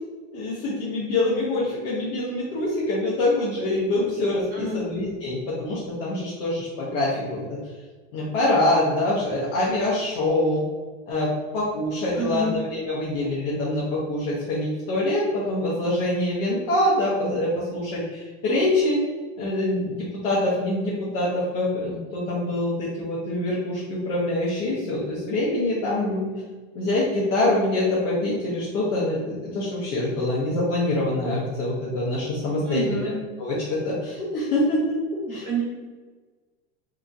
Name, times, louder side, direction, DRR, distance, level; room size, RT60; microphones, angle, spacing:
voice 1, 0.3-7.6 8.1-10.6 11.1-19.0 19.4-26.3 26.7-33.1 33.4-35.0 35.3-35.5, left 1 dB, 60° left, -7 dB, 0.8 m, -25 dB
voice 2, 12.1-12.6 32.6-33.2 35.3-35.6, right 2 dB, 35° right, -6 dB, 1.1 m, -28 dB
2.9 x 2.5 x 2.4 m, 1.4 s
hypercardioid pair, 115°, 37 cm